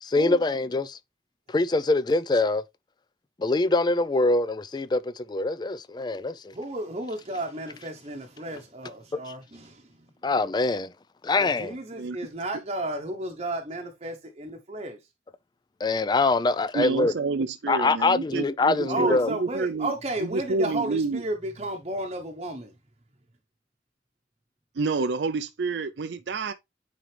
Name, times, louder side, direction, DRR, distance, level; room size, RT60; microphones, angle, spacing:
voice 1, 0.0-1.0 1.5-2.6 3.4-6.5 9.1-9.2 10.2-10.9 11.2-11.8 15.8-17.1 17.7-19.3, left 3 dB, 25° left, 0.4 m, -24 dB
voice 2, 6.5-9.9 11.4-15.0 18.9-22.7, right 1 dB, 35° right, 0.9 m, -33 dB
voice 3, 16.7-19.9 20.2-21.2 24.8-26.5, right 4 dB, 75° right, 0.5 m, -28 dB
9.0 x 3.8 x 3.3 m
head